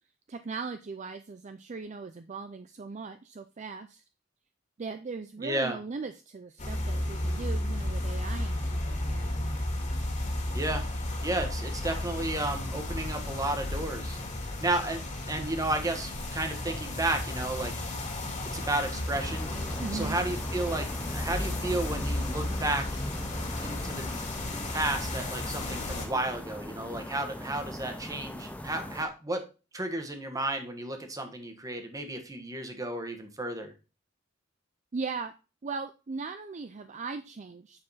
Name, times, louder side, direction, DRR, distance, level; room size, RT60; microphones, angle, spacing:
voice 1, 0.3-4.0 4.8-9.3 19.8-20.2 34.9-35.3 35.6-37.8, right 4 dB, 40° right, 9 dB, 0.4 m, -38 dB
voice 2, 5.4-5.8 10.5-10.8 11.2-14.2 14.6-17.9 18.5-19.5 19.9-22.9 23.6-24.1 24.7-29.4 29.7-33.7, right 2 dB, 20° right, 6 dB, 1.2 m, -32 dB
sound 1, 6.6-26.1, left 1 dB, 40° left, 2.1 m, -33 dB
sound 2, 19.1-29.1, left 1 dB, 10° left, 0.7 m, -40 dB
8.5 x 4.8 x 4.1 m, 0.31 s
head